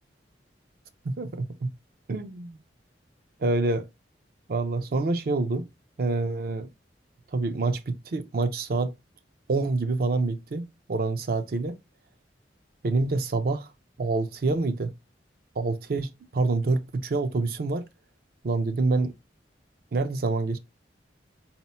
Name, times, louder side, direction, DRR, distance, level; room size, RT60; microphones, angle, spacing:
voice 1, 1.0-1.7 2.1-2.6 3.4-3.9 4.5-5.6 6.0-6.7 7.3-8.9 9.5-11.7 12.8-13.7 14.0-14.9 15.6-17.8 18.4-19.1 19.9-20.6, right 3 dB, 55° right, 0.4 m, -27 dB
4.2 x 2.0 x 4.1 m
head